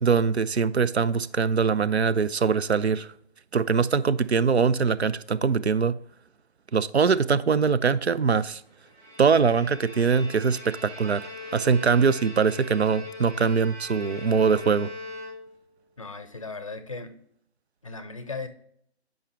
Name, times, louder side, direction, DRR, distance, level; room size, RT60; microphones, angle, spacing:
voice 1, 0.0-3.1 3.5-5.9 6.7-8.6 9.2-14.9, right 5 dB, 75° right, 0.5 m, -22 dB
Bowed string instrument, 8.8-15.8, left 2 dB, 15° right, 1.2 m, -40 dB
voice 2, 16.0-17.2 17.8-18.5, left 3 dB, 30° left, 0.5 m, -37 dB
8.7 x 5.2 x 3.2 m
figure-of-eight pair, 145°, 33 cm